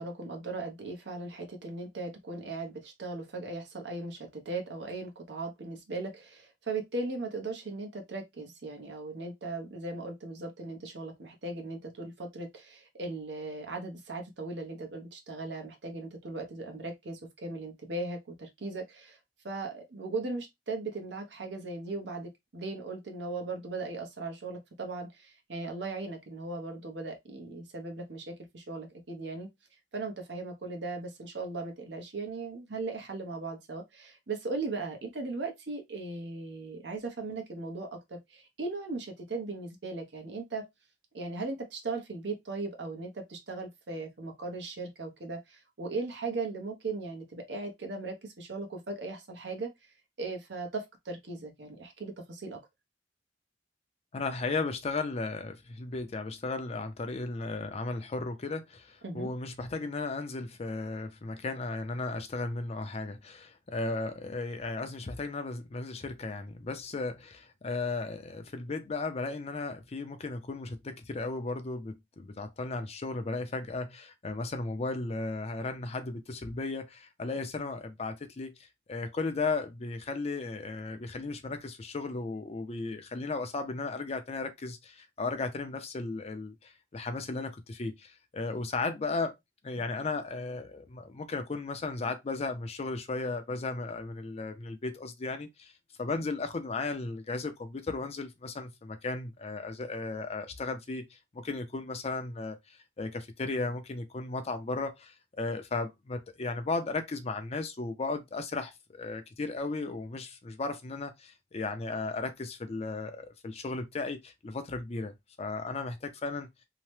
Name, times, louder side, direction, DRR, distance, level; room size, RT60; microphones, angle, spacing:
voice 1, 0.0-19.2 19.4-29.5 29.9-40.7 41.1-49.7 50.2-52.6 59.0-59.3, right 3 dB, 75° right, 0.9 m, -38 dB
voice 2, 54.1-78.5 78.9-89.4 89.6-95.7 96.0-101.1 101.3-102.6 103.0-116.5, left 3 dB, 35° left, 0.5 m, -35 dB
2.8 x 2.1 x 3.1 m
head